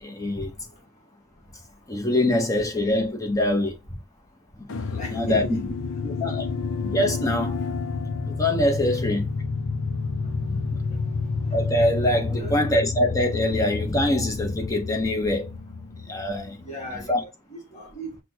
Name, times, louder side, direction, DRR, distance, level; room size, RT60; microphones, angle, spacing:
voice 1, 0.0-0.5 1.9-4.0 4.6-5.5 6.0-6.5 6.8-7.6 8.2-9.3 10.5-10.6 11.5-15.5 16.0-16.6 17.1-17.2, left 1 dB, 15° left, 0.9 m, -24 dB
sound 1, 4.7-16.9, left 4 dB, 60° left, 0.6 m, -30 dB
voice 2, 5.0-5.6 9.1-9.2 12.2-12.6 16.6-18.2, right 1 dB, 30° left, 1.7 m, -34 dB
5.9 x 2.3 x 2.9 m
head